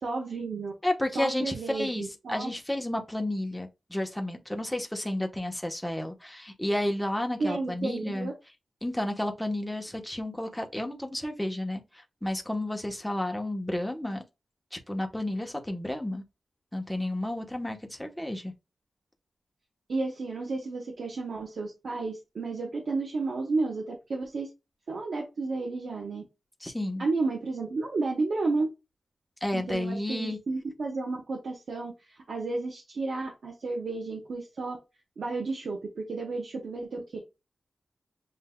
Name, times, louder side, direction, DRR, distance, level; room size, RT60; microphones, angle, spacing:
voice 1, 0.0-0.7 1.1-2.5 7.4-8.3 19.9-24.5 24.9-26.2 27.0-28.7 29.5-34.8 35.2-37.2, right 3 dB, 70° right, 1.2 m, -32 dB
voice 2, 0.8-8.3 8.8-14.2 14.7-16.2 16.7-18.5 26.6-27.1 29.4-30.4, left 1 dB, 5° left, 1.0 m, -31 dB
7.4 x 2.7 x 2.2 m
wide cardioid pair, 120°, 0 cm